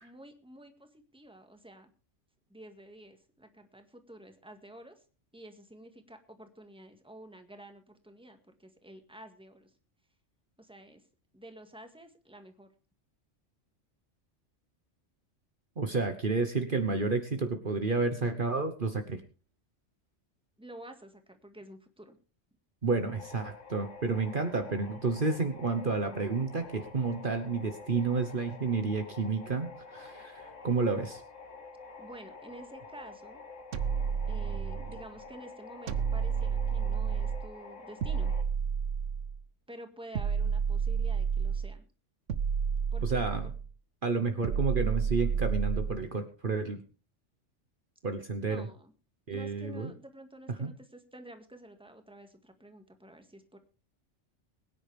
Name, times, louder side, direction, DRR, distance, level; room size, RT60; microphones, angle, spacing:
voice 1, 0.0-1.9 2.5-5.0 5.3-9.7 10.6-11.0 11.3-12.7 20.6-22.2 32.0-33.4 34.3-38.3 39.7-41.8 42.9-43.5 48.5-48.9 49.3-53.6, right 1 dB, 5° right, 6 dB, 1.8 m, -50 dB
voice 2, 15.8-19.2 22.8-31.2 43.0-43.5 44.0-46.8 48.0-48.7 49.3-49.9 50.6-50.7, right 4 dB, 45° right, 7 dB, 1.3 m, -30 dB
sound 1, 23.1-38.4, left 4 dB, 85° left, 2.0 m, -48 dB
sound 2, 33.7-35.0 35.9-37.5 38.0-39.4 40.1-41.8 42.3-43.7 44.4-46.0, right 6 dB, 85° right, 1.2 m, -30 dB
22.5 x 9.9 x 3.5 m, 0.34 s
omnidirectional pair, 1.2 m